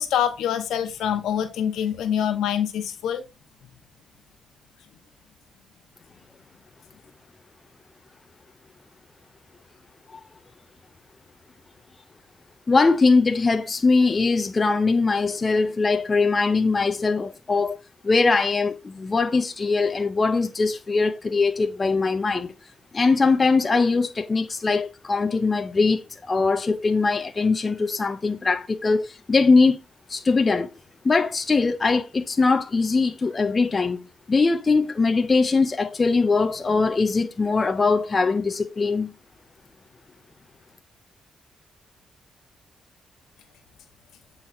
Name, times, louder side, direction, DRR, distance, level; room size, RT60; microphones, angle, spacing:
voice 1, 0.0-3.2, left 9 dB, 85° left, 0.9 m, -25 dB
voice 2, 12.7-17.8 18.0-22.5 22.9-29.8 30.1-30.7 31.0-39.1, left 4 dB, 30° left, 0.6 m, -21 dB
8.4 x 3.9 x 4.1 m
cardioid pair, 105°, 0 cm